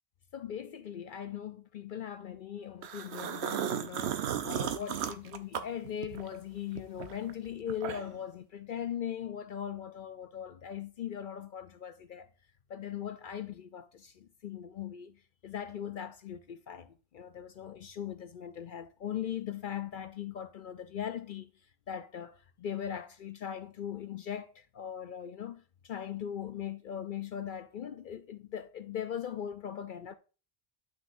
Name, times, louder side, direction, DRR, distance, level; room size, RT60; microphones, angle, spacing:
voice 1, 0.3-12.3 12.7-21.5 21.9-30.1, left 9 dB, 60° left, 0.6 m, -40 dB
sound 1, 2.8-6.4 6.7-8.2, right 9 dB, 85° right, 1.0 m, -35 dB
9.7 x 6.0 x 2.6 m
omnidirectional pair, 1.1 m